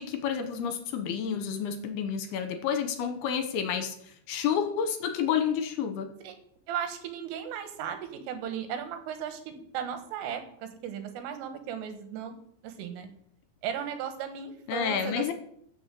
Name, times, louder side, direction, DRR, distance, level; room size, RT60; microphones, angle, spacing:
voice 1, 0.0-6.1 14.7-15.3, left 7 dB, 70° left, 7 dB, 2.7 m, -30 dB
voice 2, 6.7-12.3 12.6-13.1 13.6-15.3, right 8 dB, 85° right, 7 dB, 4.1 m, -36 dB
15.0 x 6.5 x 7.7 m, 0.67 s
omnidirectional pair, 5.6 m